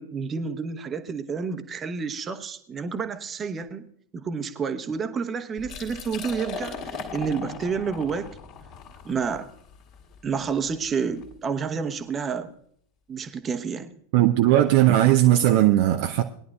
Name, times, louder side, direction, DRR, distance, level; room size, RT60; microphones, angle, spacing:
voice 1, 0.0-3.9 4.1-8.3 9.0-9.5 10.2-12.5 13.1-13.9, right 5 dB, 20° right, 1.0 m, -29 dB
Liquid, 5.6-11.3, left 4 dB, 40° left, 2.1 m, -39 dB
voice 2, 14.1-16.2, right 13 dB, 50° right, 0.6 m, -18 dB
20.5 x 10.5 x 2.4 m
figure-of-eight pair, 90°, 0 cm